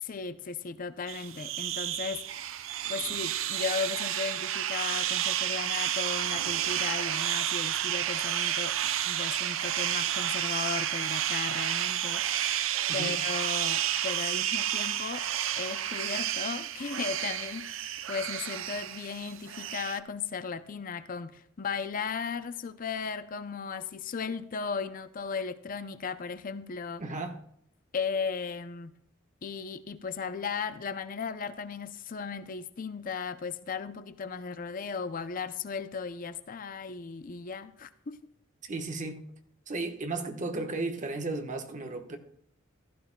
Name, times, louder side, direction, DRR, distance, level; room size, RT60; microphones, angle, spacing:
voice 1, 0.0-2.5 2.9-8.8 9.0-12.5 12.9-15.3 15.6-17.7 18.1-27.0 27.9-28.9 29.4-38.3, left 5 dB, 40° left, 0.5 m, -36 dB
sound 1, 1.1-20.0, right 11 dB, 70° right, 0.5 m, -31 dB
voice 2, 27.0-27.4 38.6-39.2 39.7-42.2, right 2 dB, 40° right, 1.2 m, -34 dB
15.5 x 12.5 x 2.2 m
head